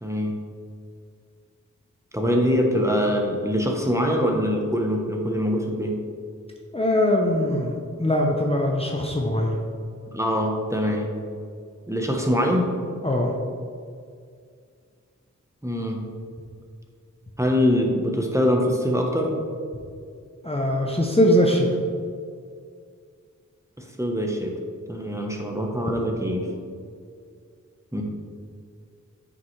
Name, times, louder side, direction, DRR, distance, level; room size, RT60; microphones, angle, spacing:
voice 1, 0.0-0.3 2.1-6.0 10.1-11.1 11.9-12.7 15.6-16.0 17.4-19.4 24.0-24.5 24.9-26.5 27.9-28.0, equal, 10° right, 1 dB, 0.9 m, -23 dB
voice 2, 6.7-9.6 13.0-13.3 20.4-21.7, left 1 dB, 20° left, -1 dB, 0.7 m, -21 dB
9.2 x 5.1 x 3.2 m, 2.2 s
wide cardioid pair, 70°, 31 cm